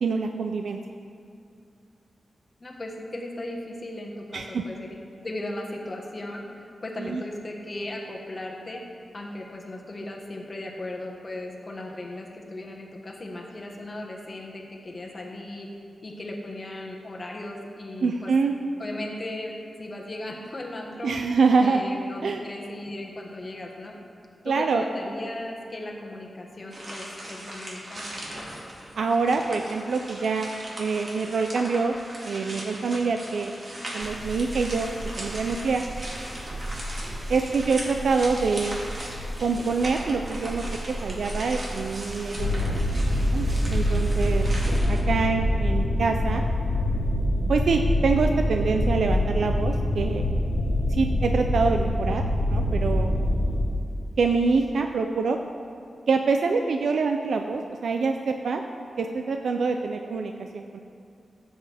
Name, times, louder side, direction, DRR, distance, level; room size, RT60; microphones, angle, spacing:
voice 1, 0.0-0.8 4.3-4.6 7.0-7.2 18.0-18.5 21.0-21.8 22.2-22.4 24.4-24.8 29.0-30.5 30.8-31.9 32.2-33.5 33.9-35.8 37.3-38.8 39.4-40.6 41.0-44.5 44.9-46.4 47.5-50.3 50.9-52.2 52.5-53.2 54.2-55.4 56.1-58.6 59.0-60.8, right 4 dB, 75° right, 5 dB, 0.5 m, -25 dB
voice 2, 2.6-8.9 9.1-15.7 16.0-18.3 18.8-21.2 21.6-24.0 24.4-28.2, left 1 dB, 30° left, 0 dB, 1.3 m, -37 dB
sound 1, 26.7-45.0, right 1 dB, 45° right, 2.2 m, -39 dB
sound 2, 34.0-44.8, right 1 dB, 25° right, 0.6 m, -37 dB
sound 3, 42.4-53.6, left 1 dB, 75° left, 1.4 m, -24 dB
14.5 x 7.9 x 3.5 m, 2.6 s
wide cardioid pair, 125°, 0 cm